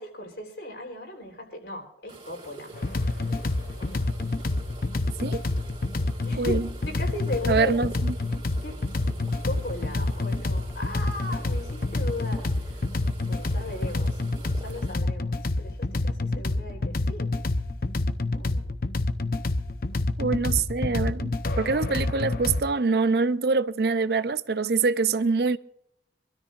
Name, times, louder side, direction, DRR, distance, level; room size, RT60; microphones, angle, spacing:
voice 1, 0.0-2.7 3.8-4.1 6.2-6.6 6.9-7.8 8.6-8.8 9.4-14.2 14.5-17.3 18.4-18.7, left 1 dB, 70° left, 3.8 m, -37 dB
sound 1, 2.1-14.9, right 2 dB, 25° right, 3.3 m, -47 dB
sound 2, 2.7-22.6, left 2 dB, 50° left, 0.7 m, -28 dB
voice 2, 6.4-6.7 7.5-8.1 20.2-25.6, right 4 dB, 60° right, 0.5 m, -25 dB
26.0 x 13.0 x 2.5 m
head